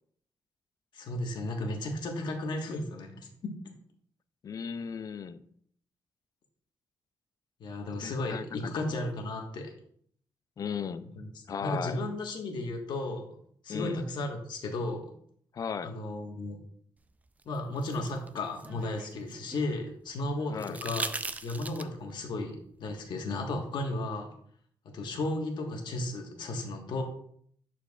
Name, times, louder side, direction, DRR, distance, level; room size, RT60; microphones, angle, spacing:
voice 1, 0.9-3.3 7.6-9.7 11.2-11.3 11.6-13.4 13.6-15.1 15.8-16.6 17.4-21.1 21.4-24.3 24.9-27.0, left 2 dB, 70° left, 3 dB, 1.4 m, -34 dB
voice 2, 4.4-5.4 8.0-9.0 10.6-11.1 11.5-12.0 13.7-14.0 15.5-15.9 20.5-20.8, left 6 dB, 50° left, 13 dB, 0.5 m, -36 dB
sound 1, 17.4-19.7 20.6-22.1 23.8-23.9, right 3 dB, 20° right, 0.4 m, -39 dB
11.0 x 4.6 x 2.4 m, 0.63 s
cardioid pair, 95°, 8 cm